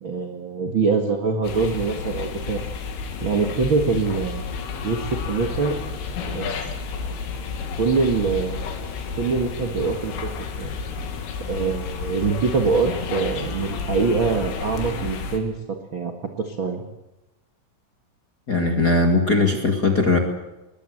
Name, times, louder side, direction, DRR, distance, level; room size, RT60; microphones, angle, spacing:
voice 1, 0.0-2.6 3.2-4.5 4.8-5.8 6.3-6.7 7.7-8.6 9.2-10.3 10.6-10.7 11.5-16.8, right 4 dB, 70° right, 4 dB, 1.1 m, -24 dB
sound 1, 1.4-15.4, left 5 dB, 90° left, 5.0 m, -31 dB
voice 2, 18.5-20.2, left 3 dB, 35° left, 2 dB, 1.7 m, -19 dB
21.5 x 21.5 x 7.9 m, 0.99 s
omnidirectional pair, 5.5 m